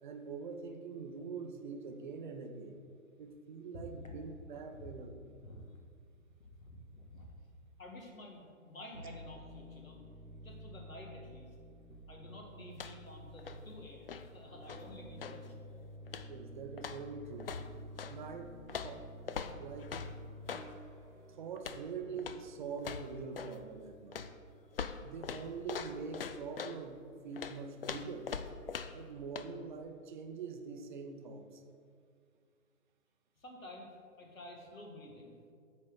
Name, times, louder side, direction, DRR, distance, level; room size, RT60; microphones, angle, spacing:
voice 1, 0.0-2.8 3.2-5.3 16.3-17.5 18.1-18.6 18.8-19.1 19.6-19.9 21.3-24.3 25.0-28.3 28.9-31.6, right 5 dB, 35° right, 6 dB, 0.7 m, -44 dB
voice 2, 6.6-7.3 7.8-10.0 10.4-11.6 12.1-15.5 33.4-33.9 34.2-35.4, left 1 dB, 75° left, 1 dB, 1.9 m, -51 dB
sound 1, 8.9-26.3, equal, 80° right, 1.4 m, -52 dB
sound 2, 12.7-13.1 13.4-15.5 16.1-16.4 16.8-18.2 18.7-20.7 21.6-21.9 22.2-22.5 22.8-23.6 24.1-26.8 27.4-29.1 29.3-29.5, left 6 dB, 45° left, 0.4 m, -43 dB
8.8 x 4.2 x 6.3 m, 2.2 s
figure-of-eight pair, 125°, 40 cm